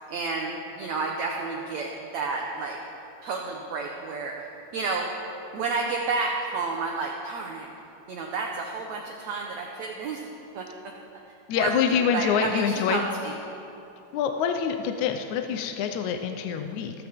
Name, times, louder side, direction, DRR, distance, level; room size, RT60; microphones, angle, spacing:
voice 1, 0.1-2.8 3.2-4.5 4.7-5.1 5.5-7.7 8.1-10.2 10.5-10.7 11.6-13.4, right 4 dB, 65° right, 0 dB, 2.1 m, -31 dB
voice 2, 11.5-13.0 14.1-16.9, left 7 dB, 70° left, 6 dB, 2.0 m, -26 dB
27.0 x 14.5 x 3.7 m, 2.9 s
omnidirectional pair, 3.9 m